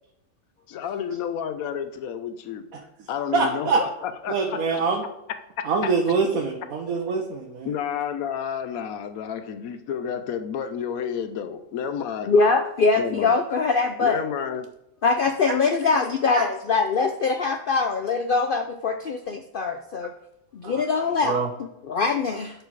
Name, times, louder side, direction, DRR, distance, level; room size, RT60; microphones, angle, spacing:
voice 1, 0.7-2.6 3.1-4.6 5.8-5.9 7.6-12.3 13.0-13.3 14.0-14.7, left 8 dB, 90° left, 9 dB, 1.2 m, -30 dB
voice 2, 3.3-3.8 4.3-5.0 5.6-7.7 16.3-16.5 20.6-20.8 21.2-21.5, right 4 dB, 85° right, 2 dB, 1.4 m, -24 dB
voice 3, 12.3-14.2 15.0-20.1 20.5-21.4 21.9-22.5, left 4 dB, 60° left, 7 dB, 0.6 m, -23 dB
11.5 x 4.9 x 4.7 m, 0.84 s
omnidirectional pair, 1.4 m